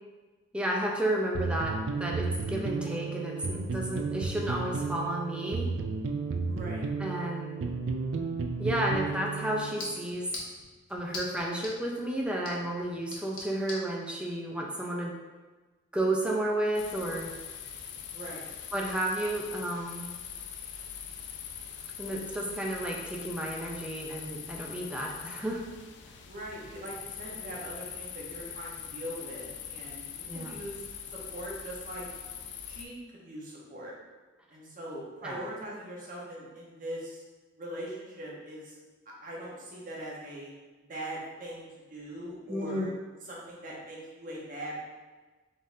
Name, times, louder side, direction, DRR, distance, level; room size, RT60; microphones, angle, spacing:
voice 1, 0.5-5.7 7.0-7.6 8.6-10.3 10.9-15.2 15.9-17.3 18.7-20.1 22.0-25.6 30.3-30.5 35.2-35.4 42.5-42.9, right 1 dB, 5° right, -1 dB, 0.4 m, -32 dB
sound 1, 1.3-9.8, right 4 dB, 75° right, 0.3 m, -33 dB
voice 2, 6.4-6.8 18.1-18.4 26.3-30.8 31.1-32.1 32.7-33.9 34.5-37.2 37.6-38.8 39.2-40.5 40.9-42.9 43.2-44.9, right 1 dB, 45° right, -4 dB, 1.0 m, -41 dB
sound 2, 8.6-13.9, left 2 dB, 85° left, 1.0 m, -44 dB
sound 3, 16.7-32.9, left 8 dB, 70° left, 0.4 m, -42 dB
3.9 x 3.6 x 2.6 m, 1.3 s
head